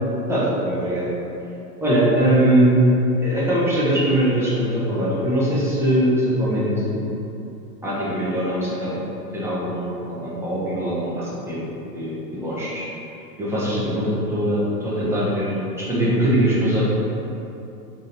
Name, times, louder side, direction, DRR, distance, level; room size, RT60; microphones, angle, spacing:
voice 1, 0.3-1.1 1.8-2.8 3.2-7.0 7.8-9.0 9.3-11.6 11.9-12.8 13.4-16.8, right 1 dB, 5° right, -9 dB, 1.0 m, -21 dB
3.7 x 3.4 x 4.1 m, 2.8 s
hypercardioid pair, 120°, 48 cm